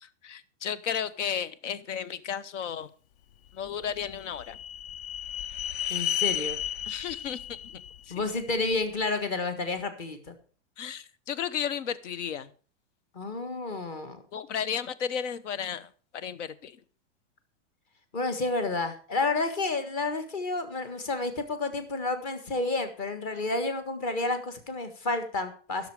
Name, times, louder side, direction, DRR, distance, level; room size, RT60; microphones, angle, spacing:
voice 1, 0.0-2.9 3.5-4.6 6.9-8.1 10.8-12.5 14.3-16.8, left 8 dB, 80° left, 16 dB, 1.0 m, -34 dB
sound 1, 3.6-8.8, left 10 dB, 50° left, 0.6 m, -34 dB
voice 2, 5.9-6.6 8.1-10.3 13.1-14.2 18.1-25.9, left 3 dB, 30° left, 8 dB, 1.5 m, -30 dB
15.5 x 6.6 x 4.8 m, 0.41 s
supercardioid pair, 180°, 36 cm